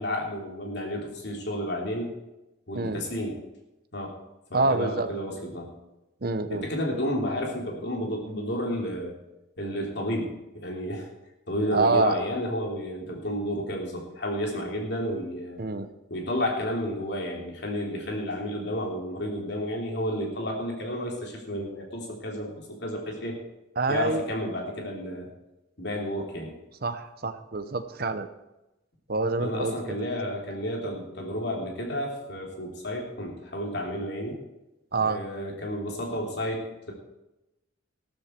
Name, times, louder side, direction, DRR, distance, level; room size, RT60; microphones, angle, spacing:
voice 1, 0.0-2.2 2.7-3.4 3.9-4.2 4.5-5.7 6.5-9.1 9.6-11.1 11.5-15.6 16.1-23.4 23.9-25.3 25.8-26.6 29.4-34.4 35.0-36.9, equal, 55° left, 0 dB, 3.1 m, -31 dB
voice 2, 4.5-5.1 6.2-6.7 11.7-12.2 15.6-15.9 23.8-24.3 26.8-28.3 29.1-30.1 34.9-35.2, right 3 dB, 50° right, 9 dB, 0.9 m, -26 dB
14.0 x 13.0 x 4.5 m, 0.97 s
head